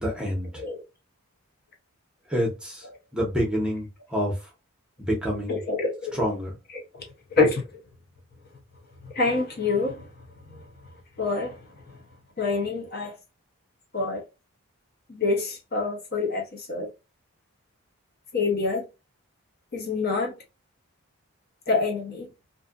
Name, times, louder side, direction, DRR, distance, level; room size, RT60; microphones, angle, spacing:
voice 1, 0.0-0.6 2.3-2.8 3.1-4.3 5.0-5.6 6.2-6.5, equal, 5° right, -2 dB, 0.8 m, -27 dB
voice 2, 5.5-6.2 6.7-7.0 7.3-7.6 9.0-10.1 10.5-10.6 11.2-12.0 12.4-13.2 13.9-14.2 15.2-16.9 18.3-18.8 19.7-20.3 21.7-22.3, left 3 dB, 45° left, 1 dB, 0.7 m, -26 dB
2.6 x 2.4 x 2.4 m, 0.26 s
head